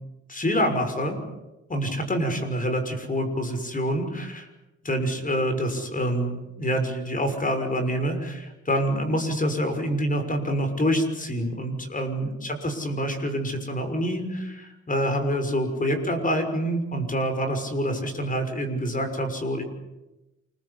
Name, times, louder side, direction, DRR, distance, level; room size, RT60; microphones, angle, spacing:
voice 1, 0.3-1.2 1.7-4.5 4.8-19.6, equal, 25° left, 7 dB, 6.2 m, -26 dB
28.0 x 22.0 x 8.4 m, 1.0 s
cardioid pair, 90°, 30 cm